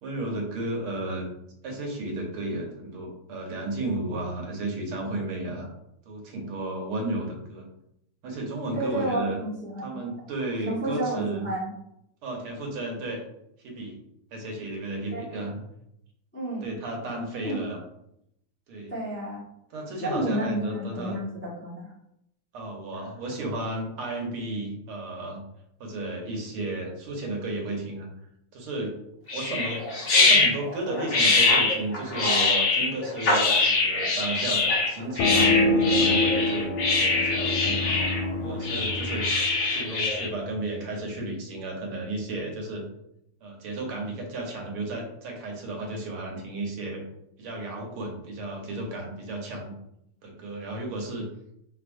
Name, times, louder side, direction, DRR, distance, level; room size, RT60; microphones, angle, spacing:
voice 1, 0.0-1.2 1.6-5.7 6.1-7.7 8.2-9.4 9.8-11.5 12.2-13.2 13.6-14.0 14.3-15.6 16.6-17.8 18.7-18.9 19.7-21.2 22.5-25.4 25.8-28.1 28.5-29.0 29.3-29.8 30.1-35.4 35.7-38.0 38.4-39.2 39.7-42.9 43.4-47.0 47.4-49.7 50.2-51.3, right 2 dB, 80° right, 1 dB, 1.9 m, -33 dB
voice 2, 8.7-9.9 10.6-11.7 15.1-15.2 16.3-16.7 17.4-17.6 18.9-19.4 20.0-21.9, right 1 dB, 10° left, -7 dB, 0.7 m, -31 dB
sound 1, 29.3-40.3, left 3 dB, 55° left, 0.8 m, -23 dB
sound 2, 35.2-40.6, left 2 dB, 80° left, 1.4 m, -27 dB
4.6 x 3.9 x 2.5 m, 0.78 s
omnidirectional pair, 2.3 m